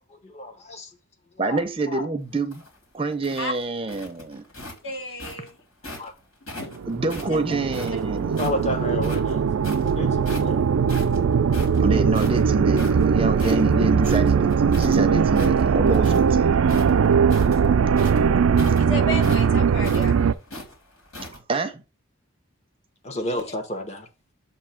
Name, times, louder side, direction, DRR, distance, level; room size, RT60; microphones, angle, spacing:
voice 1, 0.1-0.9 1.3-1.6 1.9-2.1 5.8-6.1 8.4-9.5 9.8-10.6 23.0-24.1, left 1 dB, 30° left, 1.0 m, -31 dB
voice 2, 1.4-2.6 2.9-4.4 6.9-8.5 11.8-16.5 21.5-21.8, right 3 dB, 25° right, 0.6 m, -27 dB
sound 1, 2.3-6.1 6.5-8.6 9.0-9.9 10.2-10.6 10.9-15.0 15.3-16.3 16.6-21.4, left 1 dB, 75° left, 2.6 m, -39 dB
voice 3, 4.8-5.5 6.6-6.8 18.8-20.2 23.1-23.4, left 1 dB, 60° left, 1.7 m, -32 dB
sound 2, 6.8-20.3, right 6 dB, 75° right, 0.4 m, -20 dB
7.3 x 2.8 x 5.8 m
head